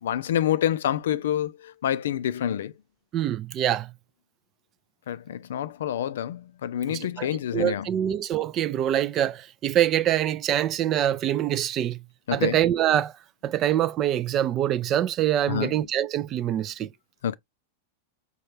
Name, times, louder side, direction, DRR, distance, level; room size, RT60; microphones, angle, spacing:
voice 1, 0.0-2.7 5.1-7.9 12.3-12.6 15.5-15.8 17.2-17.4, left 10 dB, 60° left, 0.3 m, -27 dB
voice 2, 3.1-3.9 6.9-7.3 7.5-12.0 12.3-13.1 13.4-16.9, right 11 dB, 30° right, 0.3 m, -25 dB
5.2 x 2.3 x 3.1 m
figure-of-eight pair, 90°, 0 cm